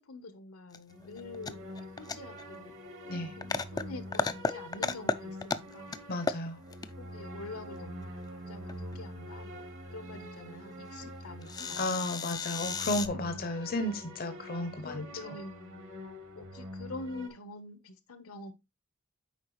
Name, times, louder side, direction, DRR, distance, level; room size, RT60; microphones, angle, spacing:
voice 1, 0.0-1.7 2.0-2.7 3.0-6.0 7.0-9.6 9.9-12.6 14.6-15.9 16.3-18.5, left 2 dB, 75° left, 1.0 m, -46 dB
sound 1, 0.7-0.8 1.0-2.4 2.7-2.8 3.2-3.8 4.1-5.2 5.4-6.0 6.2-6.9 8.7-9.0 10.1-10.2 10.5-10.6 11.0-11.1 11.4-13.1, left 4 dB, 15° left, 0.3 m, -33 dB
sound 2, 0.9-17.3, equal, 60° right, 1.2 m, -45 dB
voice 2, 6.1-6.6 11.6-15.3, left 1 dB, 45° left, 0.7 m, -34 dB
8.2 x 4.7 x 3.1 m
head